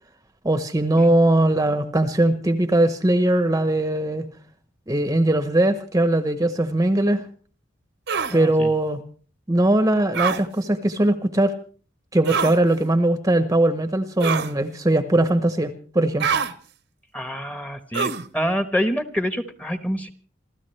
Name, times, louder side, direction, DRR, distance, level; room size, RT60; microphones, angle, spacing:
voice 1, 0.4-4.2 4.9-7.2 8.3-9.0 9.5-11.5 12.1-16.3, right 1 dB, 20° right, 10 dB, 0.9 m, -20 dB
sound 1, 8.1-8.4 10.1-10.4 12.2-12.6 14.2-14.5 16.2-16.5 17.9-18.3, right 6 dB, 60° right, 1.0 m, -24 dB
voice 2, 8.3-8.7 17.1-20.1, equal, 10° left, 9 dB, 1.1 m, -26 dB
28.5 x 13.5 x 3.3 m, 0.41 s
head